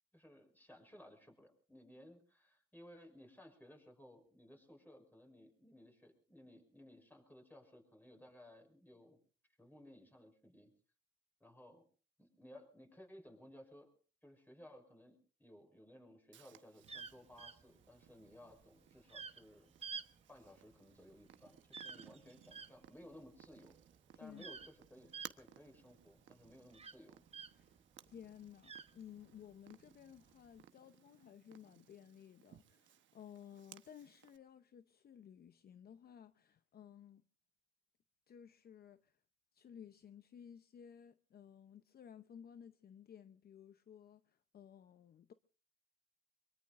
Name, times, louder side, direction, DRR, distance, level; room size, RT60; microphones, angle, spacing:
voice 1, 0.1-9.2 9.6-10.7 11.4-11.9 12.2-13.9 14.2-19.7 20.3-23.8 24.2-27.2, left 1 dB, 10° left, 6.0 m, -59 dB
Purr, 16.3-34.4, right 11 dB, 70° right, 1.1 m, -62 dB
sound 1, 16.8-27.8 28.1-29.5 30.2-30.6, right 5 dB, 30° right, 1.0 m, -51 dB
voice 2, 24.1-24.4 27.5-37.2 38.3-39.2 39.5-45.3, left 8 dB, 50° left, 0.7 m, -56 dB
24.0 x 23.0 x 2.5 m
cardioid pair, 90°, 20 cm